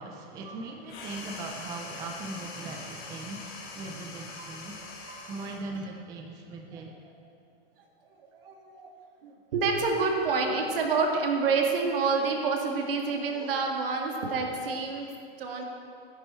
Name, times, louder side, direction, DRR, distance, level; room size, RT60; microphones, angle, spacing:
voice 1, 0.0-4.8 5.3-7.0, right 3 dB, 10° right, 2 dB, 0.4 m, -40 dB
sound 1, 0.9-5.7, left 3 dB, 50° left, 2.7 m, -42 dB
voice 2, 8.4-8.9 9.2-15.1 15.4-15.6, right 4 dB, 70° right, 1 dB, 2.1 m, -28 dB
13.5 x 10.0 x 4.4 m, 2.4 s
supercardioid pair, 160°, 29 cm